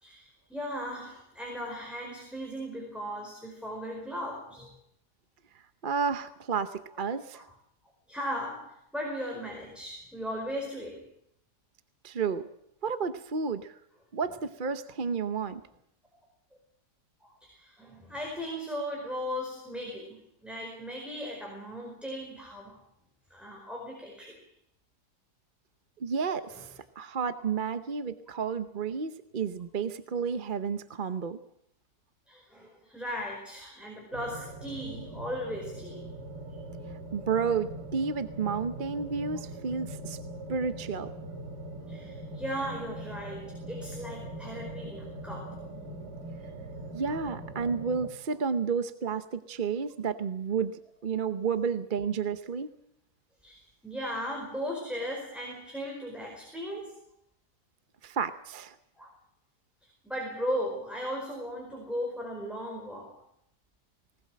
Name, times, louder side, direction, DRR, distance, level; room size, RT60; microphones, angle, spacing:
voice 1, 0.0-4.7 6.9-7.0 7.3-7.4 8.1-11.0 17.2-22.8 23.3-24.4 26.5-26.7 28.3-28.4 32.3-36.1 36.5-36.6 41.8-45.6 53.4-57.0 58.9-59.1 60.0-63.2, equal, ahead, -1 dB, 4.7 m, -37 dB
voice 2, 5.8-7.5 12.0-12.5 12.8-13.7 14.1-15.6 26.0-26.7 27.0-31.4 37.1-40.2 40.5-41.1 46.9-52.7 58.0-58.8, right 6 dB, 40° right, 10 dB, 0.8 m, -31 dB
sound 1, 34.1-48.1, right 1 dB, 70° right, 3.2 m, -41 dB
19.5 x 19.5 x 7.6 m, 0.74 s
omnidirectional pair, 1.8 m